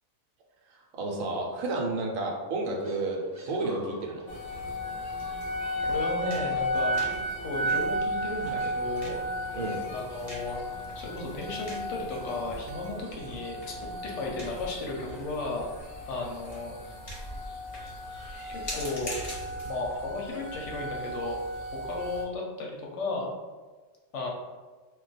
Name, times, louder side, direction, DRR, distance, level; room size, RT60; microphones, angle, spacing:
voice 1, 0.9-3.2 3.5-4.2 9.5-9.8, right 2 dB, 75° right, 0 dB, 1.0 m, -31 dB
sound 1, 2.6-14.7, right 2 dB, 35° right, 0.7 m, -51 dB
sound 2, 4.3-22.2, equal, 35° left, 0.6 m, -34 dB
voice 2, 5.8-7.1 7.4-9.2 9.9-10.6 10.9-13.7 14.0-15.7 16.1-16.7 18.5-19.2 19.6-21.4 21.7-23.4 24.1-24.3, left 3 dB, 70° left, -1 dB, 0.8 m, -34 dB
2.3 x 2.2 x 3.9 m, 1.3 s
omnidirectional pair, 1.4 m